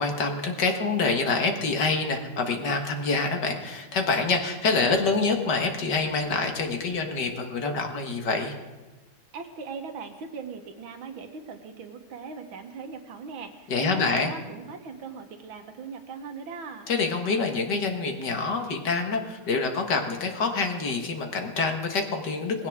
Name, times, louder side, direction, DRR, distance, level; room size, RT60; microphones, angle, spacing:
voice 1, 0.0-8.5 13.7-14.3 16.9-22.7, left 4 dB, 60° left, 4 dB, 1.9 m, -26 dB
voice 2, 9.3-16.9, right 5 dB, 75° right, 6 dB, 2.0 m, -39 dB
19.5 x 16.0 x 3.6 m, 1.2 s
omnidirectional pair, 2.2 m